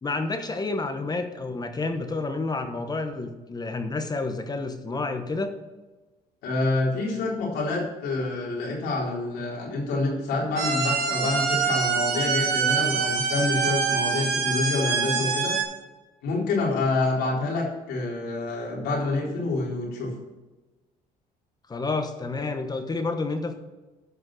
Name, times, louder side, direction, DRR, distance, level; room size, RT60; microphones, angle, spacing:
voice 1, 0.0-5.6 21.7-23.6, left 3 dB, 25° left, 7 dB, 1.2 m, -29 dB
voice 2, 6.4-15.7 16.2-20.1, left 2 dB, 80° left, -3 dB, 4.0 m, -27 dB
sound 1, 10.6-15.6, right 5 dB, 70° right, 2.8 m, -25 dB
13.0 x 5.3 x 6.3 m, 1.2 s
cardioid pair, 110°, 17 cm